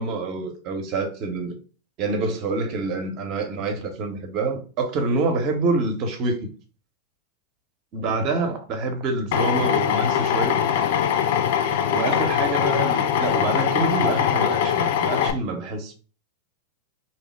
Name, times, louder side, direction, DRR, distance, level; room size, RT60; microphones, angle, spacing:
voice 1, 0.0-1.6 2.0-6.5 7.9-10.6 11.9-15.9, right 3 dB, 45° right, 0.7 m, -26 dB
Drill, 9.3-15.3, left 8 dB, 60° left, 0.3 m, -22 dB
2.8 x 2.0 x 3.1 m
figure-of-eight pair, 90°, 0 cm